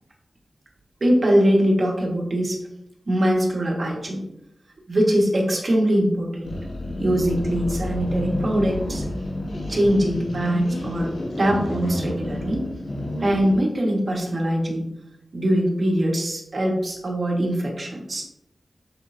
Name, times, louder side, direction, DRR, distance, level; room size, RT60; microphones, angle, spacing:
voice 1, 1.0-2.6 3.1-4.2 4.9-6.5 7.0-9.0 9.7-12.7 13.2-14.8 15.3-18.2, equal, 50° right, -1 dB, 2.1 m, -22 dB
sound 1, 6.4-13.6, left 1 dB, 90° left, 2.2 m, -30 dB
7.8 x 6.9 x 2.9 m, 0.83 s
wide cardioid pair, 100°, 0 cm